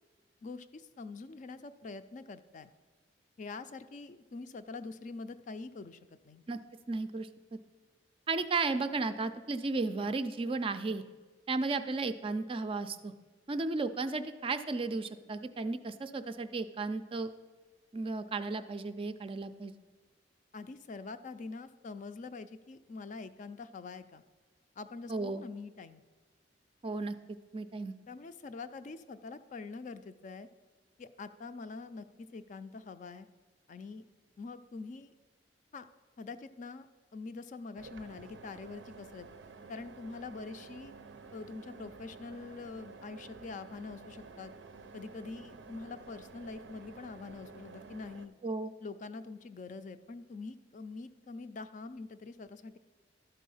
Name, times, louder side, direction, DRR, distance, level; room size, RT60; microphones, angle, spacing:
voice 1, 0.4-2.7 3.4-6.0 6.2-6.4 20.5-24.2 24.8-26.0 28.1-30.5 31.0-33.3 33.7-34.1 34.4-35.1 35.7-35.9 36.2-36.9 37.1-39.3 39.7-40.9 41.3-44.5 44.9-48.3 48.8-52.8, left 3 dB, 45° left, 11 dB, 0.4 m, -44 dB
voice 2, 6.9-7.6 8.3-11.0 11.5-13.1 13.5-17.3 17.9-19.7 25.1-25.4 26.8-27.1 27.5-27.9 48.4-48.7, right 3 dB, 30° right, 10 dB, 0.4 m, -34 dB
sound 1, 37.7-48.3, right 4 dB, 80° right, 0.5 m, -51 dB
12.0 x 4.1 x 5.5 m, 1.4 s
head